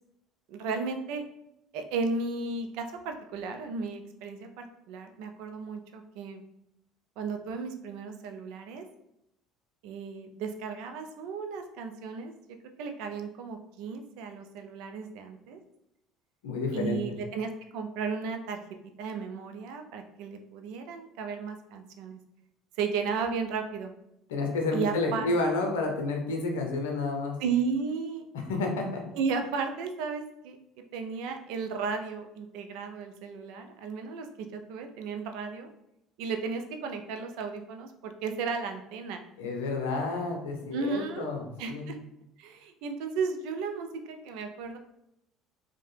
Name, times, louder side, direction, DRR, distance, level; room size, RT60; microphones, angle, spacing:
voice 1, 0.5-1.2 1.7-6.4 7.2-8.8 9.8-12.3 12.8-15.6 16.7-18.6 19.0-22.2 22.8-23.9 24.7-25.3 27.4-28.3 29.1-30.6 30.9-35.7 36.2-39.2 40.7-41.3 41.6-42.0 42.4-44.8, right 5 dB, 70° right, 5 dB, 0.3 m, -34 dB
voice 2, 16.4-17.2 24.3-27.4 28.3-29.0 39.4-41.9, left 3 dB, 85° left, 3 dB, 0.5 m, -30 dB
2.7 x 2.1 x 3.2 m, 0.83 s
hypercardioid pair, 70°, 0 cm